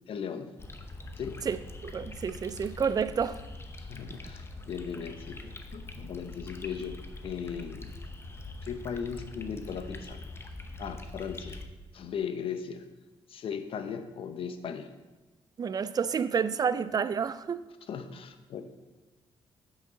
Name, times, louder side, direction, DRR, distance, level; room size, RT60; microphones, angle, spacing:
voice 1, 0.1-0.5 1.2-1.4 3.8-7.0 7.2-7.9 8.6-10.2 10.8-11.6 11.9-12.8 13.3-14.9 17.9-18.6, left 7 dB, 65° left, 0.7 m, -37 dB
sound 1, 0.6-11.7, left 2 dB, 25° left, 0.7 m, -43 dB
voice 2, 1.5-3.4 15.6-17.7, right 6 dB, 40° right, 0.4 m, -29 dB
8.0 x 5.9 x 4.0 m
cardioid pair, 80°, 10 cm